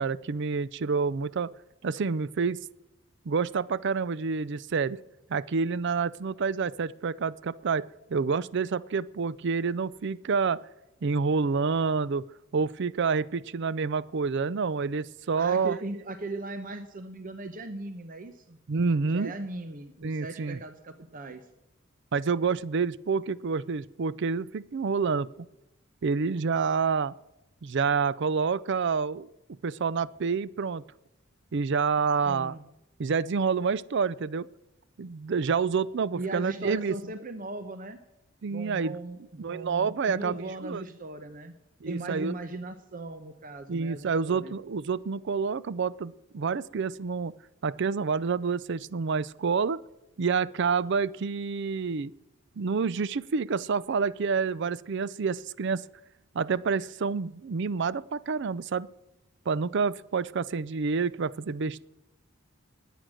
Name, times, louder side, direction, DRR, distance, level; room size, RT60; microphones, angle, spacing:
voice 1, 0.0-1.5 1.8-2.6 3.3-5.0 5.3-10.6 11.0-12.2 12.5-15.8 18.7-19.3 20.0-20.6 22.1-25.3 26.0-27.1 27.6-29.3 29.6-30.8 31.5-32.5 33.0-34.5 35.0-36.9 38.4-39.0 39.4-40.4 40.6-40.8 41.8-42.4 43.7-47.3 47.6-49.8 50.2-52.1 52.6-55.8 56.3-58.9 59.5-61.8, right 5 dB, 60° right, 19 dB, 0.5 m, -28 dB
voice 2, 15.4-18.6 19.0-21.5 32.2-32.6 36.1-38.0 38.5-41.5 41.8-44.5, right 2 dB, 40° right, 8 dB, 0.9 m, -38 dB
20.5 x 9.2 x 6.4 m, 0.92 s
head